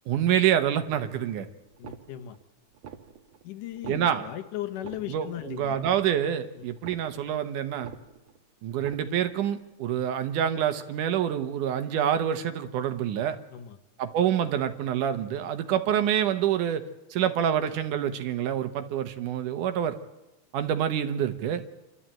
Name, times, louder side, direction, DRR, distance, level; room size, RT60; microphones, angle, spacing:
voice 1, 0.1-1.5 3.9-4.3 5.1-7.9 8.6-13.4 14.0-20.0 20.5-21.6, right 9 dB, 75° right, 9 dB, 2.6 m, -27 dB
sound 1, 0.9-1.4 1.7-2.4 2.7-3.4 3.7-4.4 4.7-5.4 5.7-6.4 6.7-7.4 7.7-8.4 8.7-9.4, right 8 dB, 55° right, 1.6 m, -46 dB
voice 2, 1.8-2.4 3.4-5.9 6.6-6.7 13.5-13.8, left 12 dB, 80° left, 9 dB, 2.7 m, -37 dB
27.5 x 12.5 x 8.9 m, 1.0 s
omnidirectional pair, 3.7 m